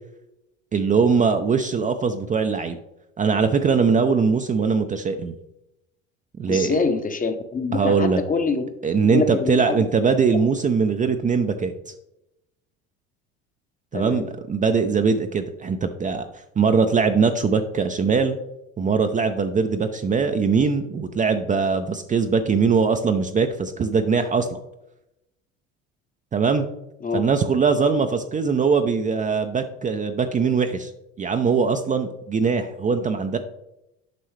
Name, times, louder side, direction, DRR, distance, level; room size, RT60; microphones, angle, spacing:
voice 1, 0.7-2.8 3.2-5.3 6.4-6.8 7.7-8.2 8.8-11.9 13.9-16.3 16.6-18.4 18.8-24.6 26.3-26.7 27.1-30.9 31.2-33.4, right 5 dB, 20° right, 6 dB, 0.5 m, -21 dB
voice 2, 6.5-8.6 9.0-9.9 13.9-14.3 27.0-27.2, left 4 dB, 25° left, 8 dB, 0.8 m, -25 dB
8.0 x 5.4 x 3.2 m, 0.88 s
hypercardioid pair, 70°, 35 cm